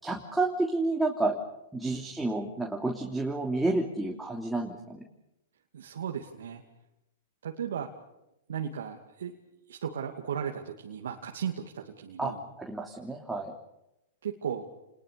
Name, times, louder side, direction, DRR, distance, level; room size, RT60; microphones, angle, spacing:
voice 1, 0.0-1.3 1.7-5.0 12.2-12.3 12.6-13.5, right 2 dB, 5° right, -1 dB, 3.1 m, -30 dB
voice 2, 5.7-6.6 7.4-7.9 8.5-9.4 9.7-12.4 14.2-14.7, right 8 dB, 80° right, 1 dB, 2.5 m, -36 dB
30.0 x 21.0 x 6.9 m, 0.88 s
hypercardioid pair, 125°, 0 cm